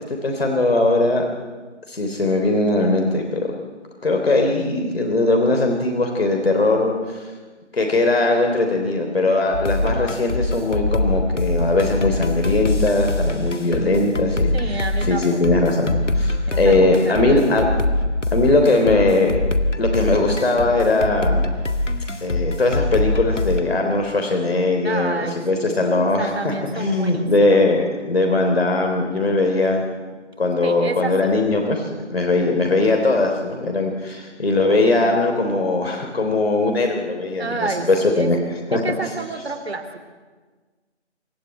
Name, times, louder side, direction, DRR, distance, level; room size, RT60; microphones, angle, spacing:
voice 1, 0.1-1.3 1.9-3.4 4.0-7.2 7.7-14.8 15.1-17.7 18.3-19.4 19.8-21.5 22.2-29.8 30.4-38.4 38.7-38.8, left 2 dB, 60° left, 2 dB, 3.4 m, -20 dB
sound 1, 9.5-23.6, left 2 dB, 85° left, 2.0 m, -23 dB
voice 2, 14.5-15.4 16.5-17.5 24.8-27.6 30.6-31.3 37.4-38.3 38.7-40.1, right 3 dB, 60° right, 6 dB, 3.0 m, -30 dB
25.5 x 13.5 x 9.3 m, 1.4 s
figure-of-eight pair, 165°, 35 cm